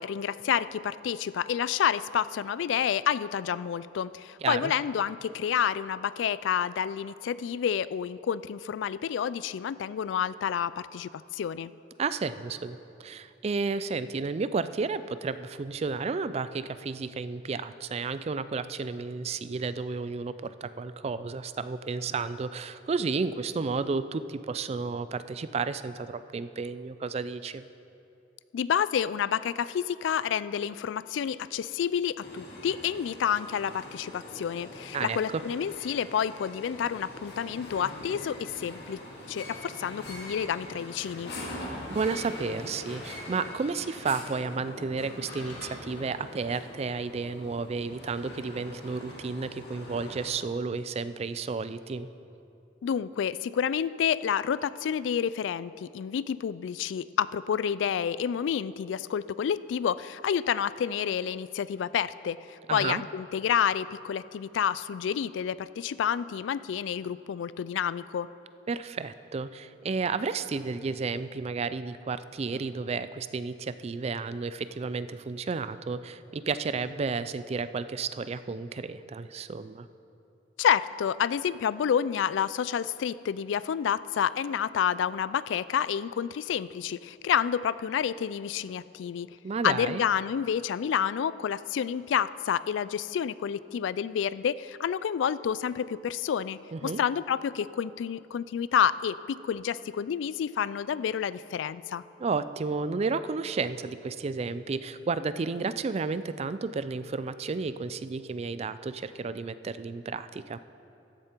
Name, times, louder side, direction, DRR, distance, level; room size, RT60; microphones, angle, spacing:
voice 1, 0.0-11.7 28.5-39.0 39.3-41.3 52.8-68.3 80.6-89.4 89.6-102.0, left 8 dB, 90° left, 17 dB, 0.3 m, -29 dB
voice 2, 4.4-4.7 12.0-27.6 34.9-35.4 41.9-52.1 62.7-63.0 68.7-79.9 89.4-90.0 96.7-97.0 102.2-110.6, right 4 dB, 35° right, 14 dB, 0.4 m, -32 dB
sound 1, 32.2-50.3, left 1 dB, 60° left, 2.4 m, -43 dB
14.0 x 10.5 x 4.5 m, 2.7 s
head